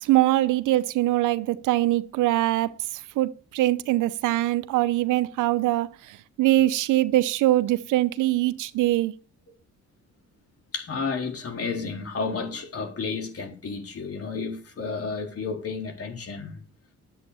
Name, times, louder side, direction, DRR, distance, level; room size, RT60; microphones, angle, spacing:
voice 1, 0.0-2.7 3.2-9.1, right 16 dB, 90° right, 0.8 m, -23 dB
voice 2, 10.7-16.6, left 4 dB, 50° left, 3.8 m, -32 dB
10.5 x 8.0 x 7.0 m
cardioid pair, 90°, 30 cm